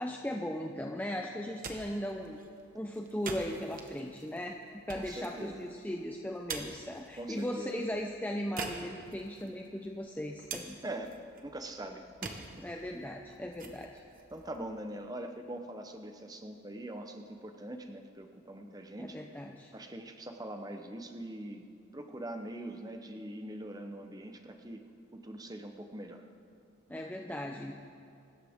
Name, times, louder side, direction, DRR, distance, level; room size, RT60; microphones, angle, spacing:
voice 1, 0.0-2.4 2.7-4.6 4.9-10.8 12.6-13.9 19.0-19.7 26.9-27.8, equal, 10° left, 2 dB, 0.6 m, -37 dB
sound 1, 1.3-15.3, right 4 dB, 45° right, 1.2 m, -47 dB
voice 2, 5.0-5.8 7.1-7.8 10.8-12.7 14.3-19.2 19.7-24.9 25.1-26.3, right 1 dB, 20° right, 5 dB, 0.8 m, -43 dB
24.0 x 13.5 x 3.6 m, 2.5 s
head